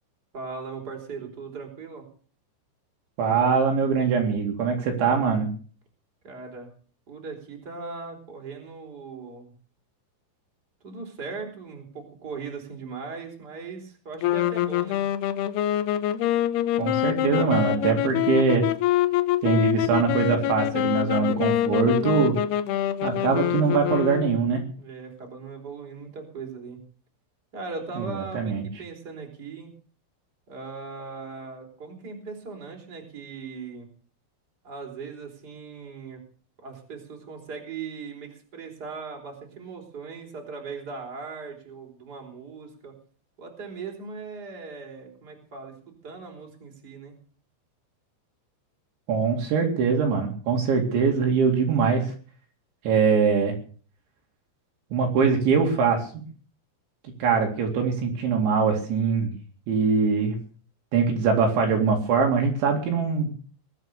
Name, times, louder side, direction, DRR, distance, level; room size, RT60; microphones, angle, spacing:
voice 1, 0.3-2.0 6.2-6.7 7.1-9.5 10.8-15.0 24.8-26.8 27.5-29.7 30.5-33.9 34.6-36.2 36.6-42.9 43.4-47.1, right 4 dB, 20° right, 1 dB, 4.2 m, -39 dB
voice 2, 3.2-5.5 16.8-18.7 19.4-22.4 23.0-24.6 28.3-28.6 49.1-52.1 52.8-53.6 54.9-56.2 57.2-59.3 59.7-60.4 60.9-63.3, right 5 dB, 65° right, 2 dB, 4.6 m, -22 dB
sound 1, 14.2-24.6, left 13 dB, 85° left, 2.3 m, -25 dB
22.0 x 8.2 x 6.7 m, 0.42 s
omnidirectional pair, 5.7 m